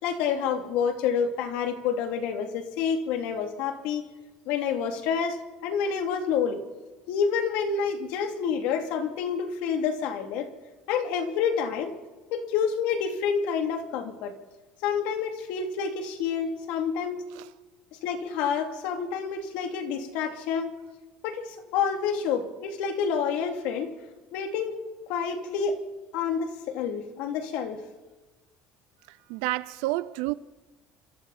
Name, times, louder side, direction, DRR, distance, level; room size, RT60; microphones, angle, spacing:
voice 1, 0.0-4.1 4.5-6.6 7.1-10.5 10.9-11.9 12.3-14.3 14.8-17.2 18.0-20.7 21.2-23.9 24.3-24.8 25.1-25.8 26.1-27.8, left 6 dB, 70° left, 3.0 m, -28 dB
voice 2, 29.1-30.3, right 19 dB, 85° right, 0.6 m, -30 dB
27.5 x 26.0 x 4.3 m
cardioid pair, 160°, 3 cm